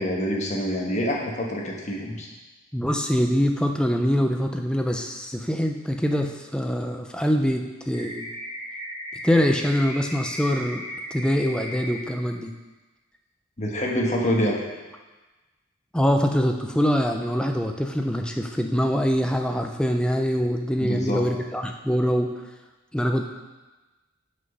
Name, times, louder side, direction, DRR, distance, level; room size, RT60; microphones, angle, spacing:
voice 1, 0.0-2.3 13.6-14.5 20.8-21.2, equal, 35° left, -2 dB, 1.2 m, -26 dB
voice 2, 2.7-8.3 9.2-10.8 11.1-12.5 15.9-22.3 22.9-23.2, equal, 5° left, 4 dB, 0.4 m, -24 dB
sound 1, 7.9-11.9, equal, 35° right, 2.5 m, -36 dB
6.3 x 5.9 x 5.5 m, 1.2 s
head